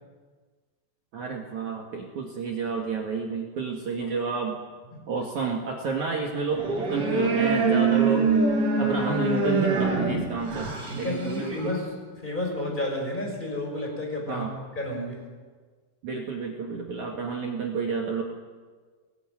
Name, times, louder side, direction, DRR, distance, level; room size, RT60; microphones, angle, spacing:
voice 1, 1.1-4.6 5.1-8.3 8.8-11.5 14.3-14.5 16.0-18.2, right 4 dB, 50° right, 0 dB, 2.9 m, -30 dB
sound 1, 6.5-11.7, right 4 dB, 35° right, 5.6 m, -24 dB
voice 2, 9.7-10.1 10.9-14.5 14.7-15.3, left 1 dB, 10° left, 1 dB, 5.7 m, -31 dB
23.0 x 20.0 x 9.0 m, 1.5 s
omnidirectional pair, 4.9 m